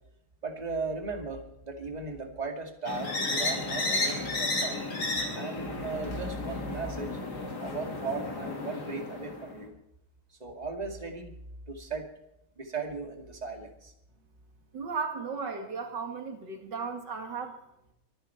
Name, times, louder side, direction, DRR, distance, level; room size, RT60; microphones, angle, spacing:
voice 1, 0.4-4.8 5.3-7.2 7.6-9.8 10.4-11.3 11.7-12.1 12.6-13.9, right 3 dB, 25° right, 4 dB, 2.4 m, -37 dB
sound 1, 2.9-9.6, left 2 dB, 70° left, 3.4 m, -33 dB
voice 2, 14.7-17.6, right 5 dB, 85° right, 5 dB, 2.7 m, -35 dB
23.5 x 10.5 x 4.5 m, 0.84 s
omnidirectional pair, 1.8 m